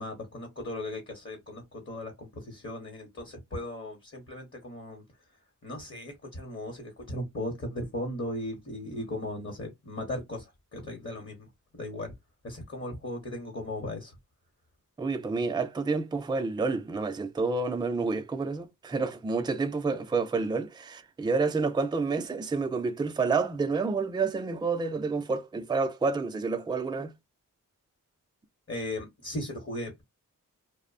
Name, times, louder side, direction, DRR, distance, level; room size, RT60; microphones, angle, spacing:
voice 1, 0.0-5.0 5.6-11.5 11.7-12.1 12.4-14.2 28.7-30.0, left 1 dB, 40° left, 0.9 m, -37 dB
voice 2, 15.0-27.1, right 4 dB, 15° right, 0.3 m, -29 dB
2.5 x 2.0 x 2.4 m
wide cardioid pair, 110°, 33 cm